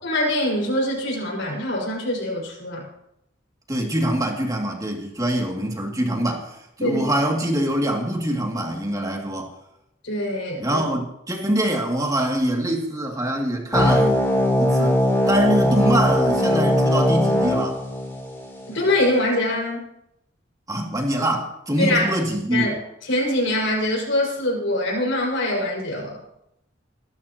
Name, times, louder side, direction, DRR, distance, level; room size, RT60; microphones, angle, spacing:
voice 1, 0.0-2.8 6.8-7.0 10.0-10.8 18.7-19.8 21.8-22.0 22.5-22.8 23.1-26.2, left 1 dB, 85° left, -2 dB, 5.6 m, -23 dB
voice 2, 3.7-9.5 10.6-14.2 14.6-15.0 15.3-17.8 20.7-22.7, right 1 dB, 20° right, 0 dB, 2.5 m, -24 dB
sound 1, 13.7-18.7, left 1 dB, 15° left, 4.1 m, -20 dB
22.5 x 12.5 x 3.0 m, 0.81 s
head